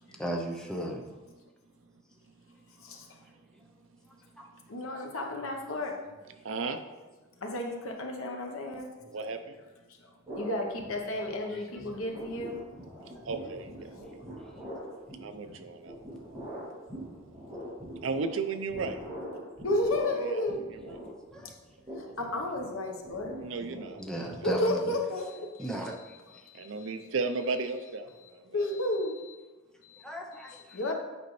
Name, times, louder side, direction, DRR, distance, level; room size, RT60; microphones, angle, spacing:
voice 1, 0.2-1.0 4.4-4.5 11.5-11.6 21.3-21.5 24.0-24.9 25.6-25.9 30.0-30.6, right 1 dB, 5° left, 0 dB, 0.6 m, -35 dB
voice 2, 4.7-6.0 7.4-8.9 10.3-12.6 19.6-20.6 22.2-23.3 24.4-25.7 26.3-26.7 28.5-29.4 29.8-30.0 30.4-30.9, left 1 dB, 80° left, 2 dB, 1.0 m, -32 dB
voice 3, 6.4-6.8 9.1-9.4 13.3-13.7 15.2-15.9 18.0-19.0 20.1-21.0 23.4-24.3 25.4-25.5 25.9-26.0 26.6-28.1 28.5-28.8, right 4 dB, 65° right, 8 dB, 0.5 m, -34 dB
sound 1, 10.2-11.5 11.8-24.9, equal, 20° right, 2.4 m, -44 dB
8.2 x 5.1 x 3.1 m, 1.2 s
head